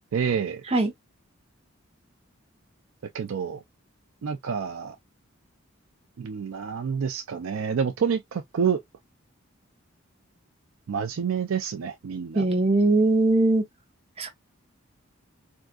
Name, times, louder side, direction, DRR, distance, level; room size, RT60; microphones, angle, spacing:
voice 1, 0.1-0.6 3.1-3.6 4.2-5.0 6.2-8.8 10.9-12.4, right 7 dB, 90° right, 0.4 m, -28 dB
voice 2, 12.3-13.6 14.2-14.3, right 2 dB, 30° right, 0.8 m, -20 dB
3.6 x 2.6 x 2.3 m
head